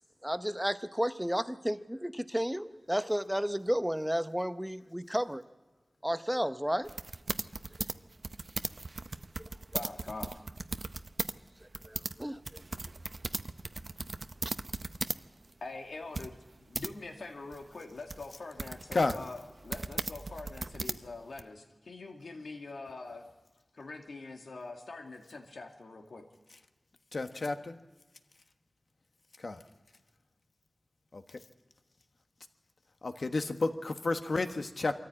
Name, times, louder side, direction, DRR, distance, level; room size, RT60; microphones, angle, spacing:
voice 1, 0.2-5.4 6.0-6.9 11.9-12.4, equal, 5° right, 11 dB, 0.7 m, -32 dB
sound 1, 6.8-11.3 11.6-15.2 15.5-15.6 16.1-16.9 17.5-21.4, right 3 dB, 50° right, 0.6 m, -38 dB
voice 2, 9.7-10.3 15.6-23.3 23.7-26.3, left 3 dB, 90° left, 2 dB, 2.2 m, -44 dB
voice 3, 27.1-27.8 29.4-29.6 31.1-31.2 33.0-34.9, left 3 dB, 60° left, 7 dB, 1.2 m, -31 dB
23.5 x 14.0 x 8.7 m, 1.2 s
wide cardioid pair, 90°, 0 cm